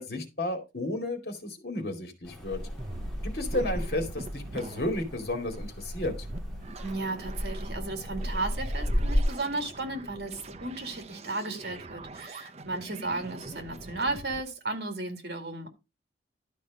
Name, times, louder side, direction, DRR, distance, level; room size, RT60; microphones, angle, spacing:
voice 1, 0.0-2.6 3.2-6.1, left 1 dB, 55° left, 2.4 m, -32 dB
sound 1, 2.2-9.2, equal, ahead, 2.9 m, -33 dB
sound 2, 2.8-14.4, right 2 dB, 35° right, 0.7 m, -43 dB
voice 2, 6.8-15.7, right 2 dB, 60° right, 2.1 m, -34 dB
12.0 x 5.3 x 4.9 m
head